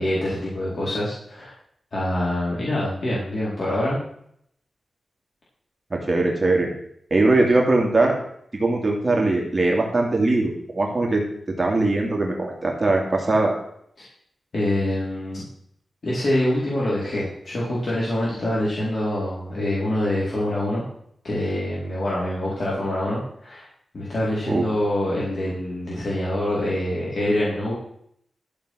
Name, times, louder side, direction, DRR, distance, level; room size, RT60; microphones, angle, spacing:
voice 1, 0.0-1.5 1.9-4.0 14.5-15.4 16.0-20.8 21.2-23.7 23.9-27.7, left 1 dB, 50° left, -7 dB, 4.6 m, -25 dB
voice 2, 5.9-6.7 7.1-8.1 8.6-11.2 11.5-13.5 24.5-24.7, right 2 dB, 25° right, -1 dB, 2.7 m, -21 dB
13.0 x 6.9 x 6.4 m, 0.68 s
wide cardioid pair, 135°, 0 cm